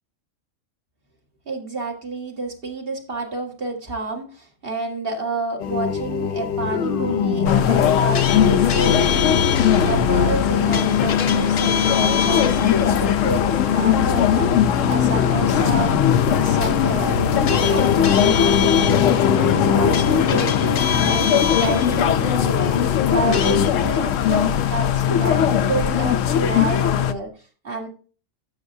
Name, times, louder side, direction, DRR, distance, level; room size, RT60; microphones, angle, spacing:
voice 1, 1.5-15.9 16.4-27.9, right 3 dB, 45° right, 1 dB, 2.1 m, -29 dB
sound 1, 5.6-23.7, left 7 dB, 50° left, 0.8 m, -23 dB
sound 2, 7.4-27.1, left 9 dB, 80° left, 1.0 m, -20 dB
11.5 x 7.3 x 2.7 m, 0.38 s
omnidirectional pair, 1.3 m